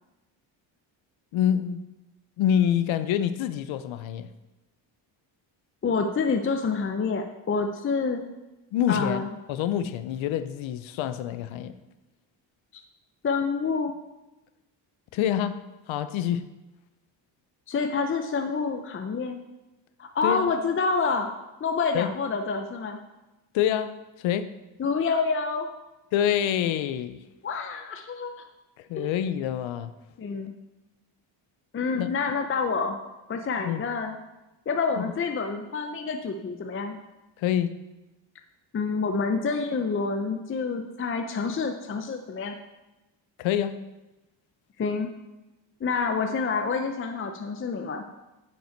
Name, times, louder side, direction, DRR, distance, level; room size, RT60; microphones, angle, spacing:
voice 1, 1.3-1.8 2.4-4.3 8.7-9.2 9.5-11.8 15.1-15.6 15.9-16.4 20.2-20.5 21.9-22.1 23.5-24.5 26.1-27.2 28.8-29.9 32.0-32.1 33.6-33.8 35.0-35.1 37.4-37.7 43.4-43.8, left 10 dB, 75° left, 12 dB, 0.7 m, -26 dB
voice 2, 5.8-8.2 8.9-9.3 12.7-12.8 13.2-13.9 17.7-19.4 20.0-21.3 21.6-23.0 24.8-25.7 27.4-28.3 29.0-29.1 30.2-30.5 31.7-33.0 33.3-34.1 34.7-37.0 38.7-42.6 44.8-45.1 45.8-48.0, left 4 dB, 30° left, 5 dB, 0.6 m, -27 dB
9.6 x 5.6 x 4.4 m, 1.0 s
cardioid pair, 115°, 47 cm